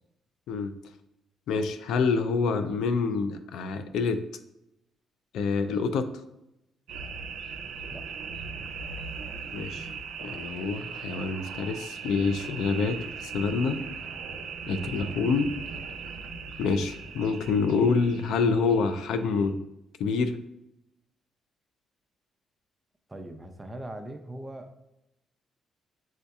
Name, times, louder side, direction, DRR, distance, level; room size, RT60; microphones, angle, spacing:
voice 1, 1.5-4.2 5.3-6.1 9.5-9.9 10.2-13.8 14.7-15.5 16.6-19.6 20.0-20.4, left 4 dB, 80° left, 10 dB, 0.3 m, -27 dB
sound 1, 6.9-19.5, right 5 dB, 90° right, 0.5 m, -39 dB
voice 2, 23.1-24.8, right 1 dB, 15° right, 5 dB, 0.6 m, -40 dB
7.5 x 2.7 x 2.3 m, 0.85 s
cardioid pair, 90°, 0 cm